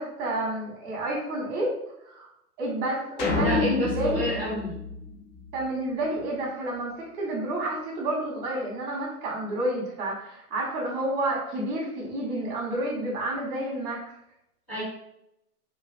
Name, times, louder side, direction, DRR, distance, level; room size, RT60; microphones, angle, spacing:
voice 1, 0.0-1.7 2.0-2.3 2.6-4.4 5.5-14.0, right 1 dB, 20° right, -3 dB, 0.8 m, -30 dB
sound 1, 3.2-5.7, left 4 dB, 50° left, 0.7 m, -29 dB
voice 2, 3.4-4.8 14.7-14.8, equal, 5° left, -5 dB, 0.5 m, -29 dB
2.5 x 2.3 x 2.4 m, 0.82 s
hypercardioid pair, 115°, 47 cm